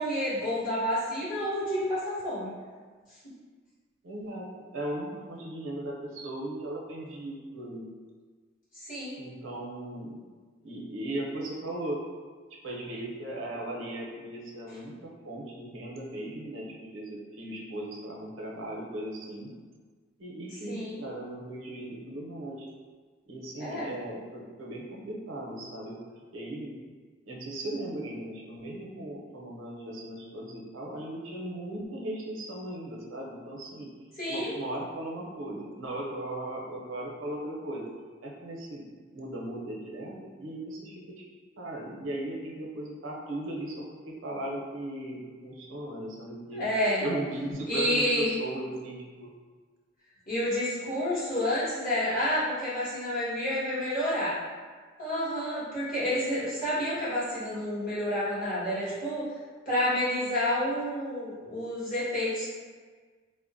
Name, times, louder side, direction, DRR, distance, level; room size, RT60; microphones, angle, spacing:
voice 1, 0.0-2.5 8.7-9.1 20.7-21.0 23.6-23.9 34.2-34.5 46.5-47.0 47.7-48.3 50.3-54.3 55.0-59.2 59.6-62.5, left 1 dB, 45° left, -11 dB, 1.4 m, -29 dB
voice 2, 4.0-7.9 9.2-10.2 10.6-12.0 12.6-19.5 20.2-22.7 23.3-26.0 26.3-26.8 27.3-33.9 34.3-37.8 38.2-38.9 39.1-41.0 41.6-46.7 47.0-49.3, right 1 dB, 85° right, -2 dB, 0.6 m, -37 dB
3.5 x 2.1 x 2.5 m, 1.5 s
head